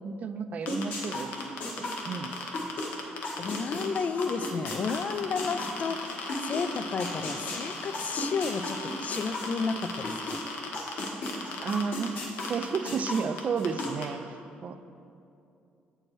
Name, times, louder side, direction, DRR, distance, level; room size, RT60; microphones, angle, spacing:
voice 1, 0.0-1.3 1.8-2.3 11.6-14.2 14.6-14.8, right 5 dB, 45° right, 10 dB, 0.3 m, -32 dB
sound 1, 0.7-4.0 4.2-12.1 12.4-12.8 13.1-13.2 13.4-14.0, left 4 dB, 85° left, 0.8 m, -37 dB
sound 2, 0.7-6.6 7.0-10.4 10.7-13.9, left 2 dB, 65° left, 1.4 m, -35 dB
voice 2, 3.4-10.4, left 5 dB, 45° left, 10 dB, 0.3 m, -32 dB
7.7 x 4.4 x 4.5 m, 2.7 s
cardioid pair, 100°, 4 cm